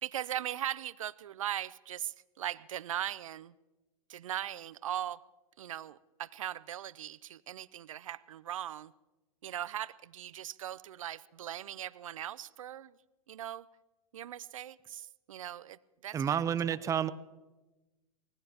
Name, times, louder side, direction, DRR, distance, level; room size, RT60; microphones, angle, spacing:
voice 1, 0.0-3.5 4.1-5.2 5.6-8.9 9.4-12.9 13.3-13.7 14.1-16.4, right 11 dB, 70° right, 19 dB, 0.6 m, -39 dB
voice 2, 16.1-17.1, right 8 dB, 20° right, 14 dB, 0.6 m, -30 dB
25.5 x 19.5 x 2.9 m, 1.1 s
hypercardioid pair, 105°, 18 cm